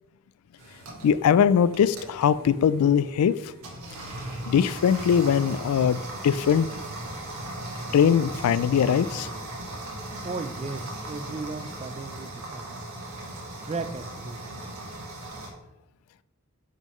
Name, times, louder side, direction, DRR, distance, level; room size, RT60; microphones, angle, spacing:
sound 1, 0.6-15.5, right 1 dB, 80° right, 1.6 m, -38 dB
voice 1, 1.0-3.3 4.5-6.7 7.9-9.3, left 8 dB, 75° left, 17 dB, 0.3 m, -21 dB
voice 2, 10.2-12.8 13.6-14.4, right 4 dB, 30° right, 11 dB, 0.3 m, -36 dB
9.0 x 3.8 x 3.1 m, 0.95 s
head